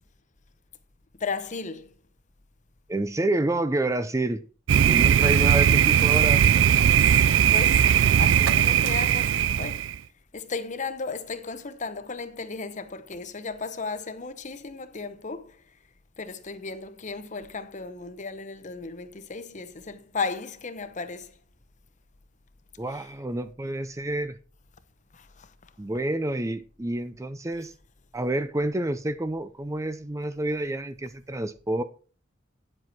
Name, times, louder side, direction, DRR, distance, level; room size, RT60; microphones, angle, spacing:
voice 1, 1.2-1.9 7.0-7.9 8.2-9.9 10.3-15.6 16.2-21.4 22.9-23.0 25.1-25.5, left 4 dB, 40° left, 0.8 m, -35 dB
voice 2, 2.9-4.4 4.8-6.4 22.8-24.4 25.8-27.7 28.1-31.8, right 1 dB, 15° right, 0.5 m, -28 dB
Thunder, 4.7-10.0, right 9 dB, 70° right, 0.4 m, -19 dB
9.6 x 7.7 x 4.5 m
head